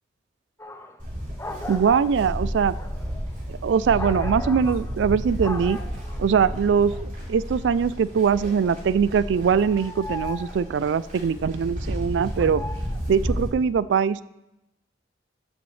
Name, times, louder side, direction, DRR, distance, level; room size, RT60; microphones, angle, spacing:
sound 1, 0.6-1.0 1.4-5.1 5.4-6.3 6.7-8.7 9.1-11.1 12.0-13.5, left 2 dB, 15° left, 0.6 m, -38 dB
Livestock farm animals working animals, 1.0-13.5, equal, 45° right, 3.4 m, -32 dB
voice 1, 1.7-2.7 3.5-5.8 6.2-6.9 7.3-12.6 13.1-14.2, right 6 dB, 70° right, 18 dB, 0.3 m, -22 dB
14.5 x 7.0 x 3.2 m, 0.93 s
head